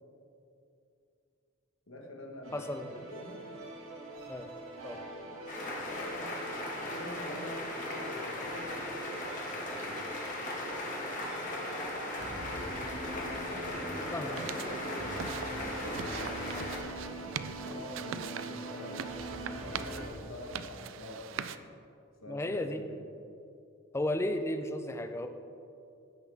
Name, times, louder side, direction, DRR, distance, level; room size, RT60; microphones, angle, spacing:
voice 1, 1.9-2.7 2.9-3.5 5.2-5.5 5.9-6.3 6.8-9.1 9.5-10.3 12.2-12.6 13.0-15.2 15.6-16.9 17.6-19.1 19.6-21.5 22.2-23.1, left 1 dB, 80° left, 1 dB, 1.4 m, -46 dB
sound 1, 2.4-20.1, right 1 dB, 85° right, 1.7 m, -43 dB
voice 2, 2.5-3.0 4.3-4.5 4.8-5.0 14.1-14.3 22.3-22.8 23.9-25.3, left 1 dB, 15° left, 7 dB, 0.5 m, -34 dB
sound 2, 5.5-16.8, left 1 dB, 40° left, 1.6 m, -38 dB
sound 3, 14.4-21.6, right 8 dB, 70° right, 0.4 m, -42 dB
16.0 x 6.0 x 3.5 m, 2.6 s
head